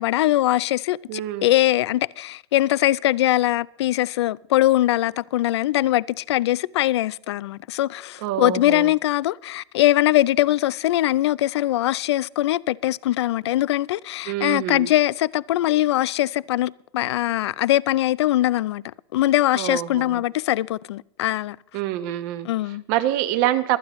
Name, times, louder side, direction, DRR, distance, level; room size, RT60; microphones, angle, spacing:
voice 1, 0.0-18.8 19.1-21.6 22.4-22.8, left 15 dB, 90° left, 0.4 m, -22 dB
voice 2, 1.1-1.5 8.2-8.9 14.2-14.9 19.5-20.2 21.7-22.5 22.9-23.8, right 13 dB, 50° right, 1.0 m, -25 dB
23.5 x 9.6 x 3.1 m
supercardioid pair, 155°, 14 cm